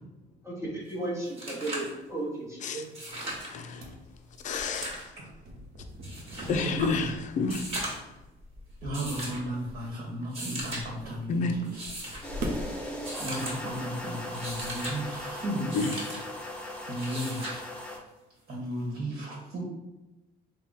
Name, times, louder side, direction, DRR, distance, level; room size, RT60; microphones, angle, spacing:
voice 1, 0.4-2.8, right 2 dB, 15° right, -4 dB, 0.9 m, -34 dB
sound 1, 0.9-1.0 1.2-1.9 2.8-3.5 4.4-5.1 6.0-6.5 7.4-8.1 8.9-9.4 10.2-10.8 11.6-12.2 13.0-13.6 14.2-15.0 15.7-16.2 17.0-17.6 19.0-19.1, right 1 dB, 35° right, 1.3 m, -38 dB
sound 2, 3.2-15.9, equal, 80° right, 0.7 m, -43 dB
voice 2, 3.4-3.9 4.4-5.0 6.5-8.0 11.3-11.5 15.7-15.9, left 4 dB, 50° left, 6 dB, 0.4 m, -30 dB
voice 3, 6.3-7.1 8.8-11.8 13.2-15.7 16.8-17.6 18.5-19.6, right 1 dB, 55° right, -4 dB, 1.2 m, -34 dB
sound 3, 12.2-18.0, left 1 dB, 5° left, 0.8 m, -38 dB
3.4 x 2.2 x 4.0 m, 1.0 s
cardioid pair, 110°, 17 cm